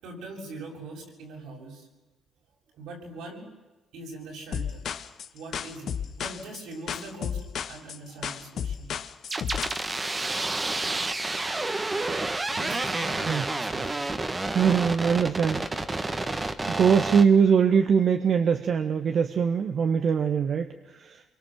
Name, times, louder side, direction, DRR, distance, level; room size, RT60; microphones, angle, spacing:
voice 1, 0.0-1.9 2.7-3.5 3.9-4.8 5.3-7.4 7.7-8.9 12.5-14.1, right 2 dB, 85° right, 0 dB, 7.5 m, -42 dB
sound 1, 4.5-9.8, left 8 dB, 65° left, 1.3 m, -33 dB
sound 2, 9.3-17.2, right 2 dB, 25° right, 1.9 m, -29 dB
voice 2, 14.5-15.7 16.7-21.2, right 6 dB, 60° right, 6 dB, 1.5 m, -22 dB
25.0 x 23.5 x 7.7 m, 1.1 s
cardioid pair, 90°, 0 cm